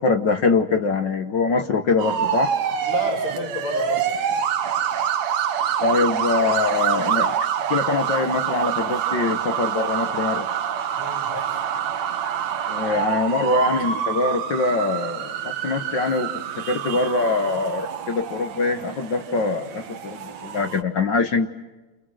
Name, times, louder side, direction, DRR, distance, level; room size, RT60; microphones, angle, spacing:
voice 1, 0.0-2.5 5.8-7.4 7.7-10.5 12.7-16.3 16.6-21.5, left 4 dB, 50° left, 7 dB, 1.4 m, -23 dB
sound 1, 2.0-20.8, right 9 dB, 70° right, 2.5 m, -26 dB
voice 2, 2.9-4.2 10.9-11.7, left 3 dB, 70° left, 0 dB, 7.0 m, -31 dB
30.0 x 29.5 x 6.4 m, 1.2 s
omnidirectional pair, 3.3 m